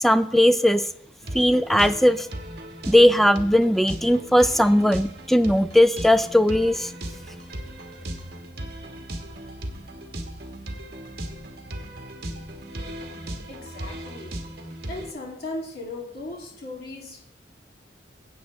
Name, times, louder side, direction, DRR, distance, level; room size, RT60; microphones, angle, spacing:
voice 1, 0.0-0.8 1.3-2.3 2.9-6.9, left 1 dB, ahead, 12 dB, 0.4 m, -18 dB
sound 1, 1.2-15.1, right 1 dB, 60° right, 1.5 m, -37 dB
voice 2, 13.3-14.4 14.9-17.2, left 2 dB, 60° left, -2 dB, 2.6 m, -37 dB
16.5 x 8.3 x 3.2 m, 0.69 s
head